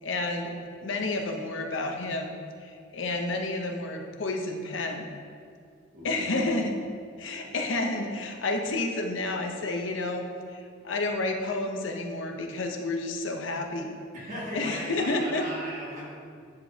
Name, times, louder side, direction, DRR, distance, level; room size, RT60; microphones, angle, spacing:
voice 1, 0.0-0.5 0.8-2.3 2.6-5.1 6.0-6.8 7.2-14.0 14.5-15.4, left 2 dB, 75° left, 3 dB, 0.7 m, -30 dB
voice 2, 5.9-6.4 7.4-7.5 14.3-16.1, equal, 40° right, -6 dB, 1.8 m, -38 dB
10.5 x 5.0 x 2.8 m, 2.2 s
head